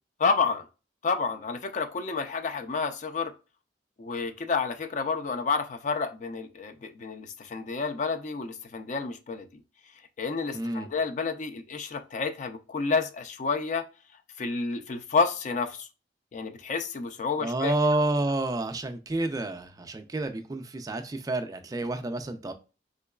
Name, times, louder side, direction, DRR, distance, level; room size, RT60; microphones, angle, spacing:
voice 1, 0.2-0.7 1.0-3.3 4.0-9.6 10.2-13.9 14.4-15.9 16.3-17.7, left 4 dB, 45° left, 0.4 m, -30 dB
voice 2, 10.5-10.9 17.4-22.5, right 2 dB, 20° right, 0.3 m, -29 dB
3.7 x 3.0 x 2.3 m
head